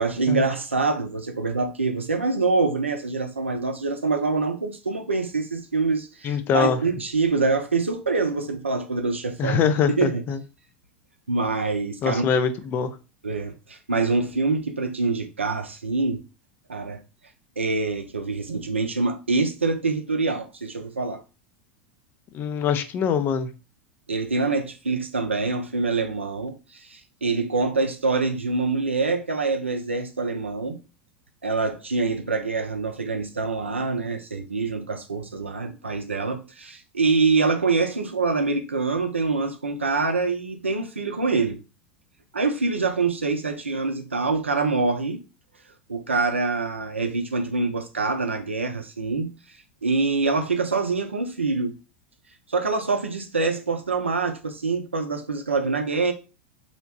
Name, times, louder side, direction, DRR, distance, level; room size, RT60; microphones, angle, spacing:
voice 1, 0.0-9.6 10.0-10.2 11.3-12.3 13.2-16.2 16.7-17.0 17.6-21.2 24.1-30.8 31.4-41.6 42.3-45.2 45.9-49.3 49.8-51.7 52.5-56.1, right 3 dB, 85° right, 0.4 m, -25 dB
voice 2, 6.2-6.8 9.4-10.4 12.0-12.9 22.3-23.5, left 6 dB, 30° left, 0.4 m, -23 dB
2.8 x 2.1 x 2.7 m
figure-of-eight pair, 85°, 6 cm